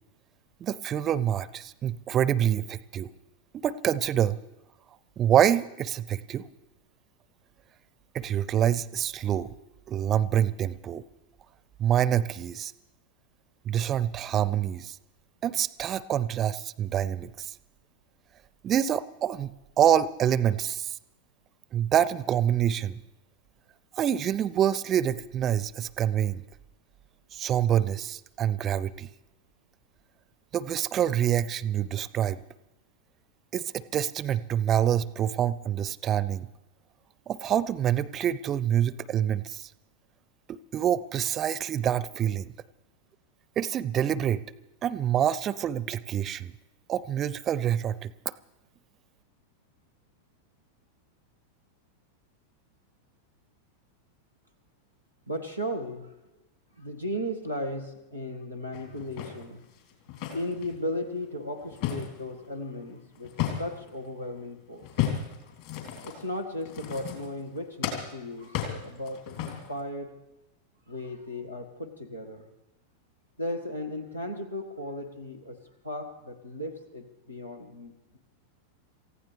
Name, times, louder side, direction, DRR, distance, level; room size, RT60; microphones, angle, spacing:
voice 1, 0.6-3.1 3.5-4.4 5.2-6.5 8.1-9.5 9.9-11.0 11.8-12.7 13.7-15.0 15.4-17.5 18.6-19.5 19.8-21.0 21.7-22.9 23.9-26.4 27.3-29.1 30.5-32.4 33.5-36.5 37.3-39.7 40.5-42.5 43.6-44.4 44.8-46.5 46.9-48.3, right 10 dB, 30° right, 19 dB, 0.5 m, -26 dB
voice 2, 55.3-56.1 56.8-59.6 60.3-63.3 63.6-64.9 66.0-70.1 70.9-72.5 73.4-75.6 75.8-78.2, left 1 dB, 85° left, 4 dB, 1.7 m, -36 dB
sound 1, 58.7-60.8 61.2-64.0 64.8-67.6 67.8-69.8, left 10 dB, 50° left, 3.0 m, -34 dB
28.0 x 15.5 x 3.3 m, 0.95 s
figure-of-eight pair, 90°, 0 cm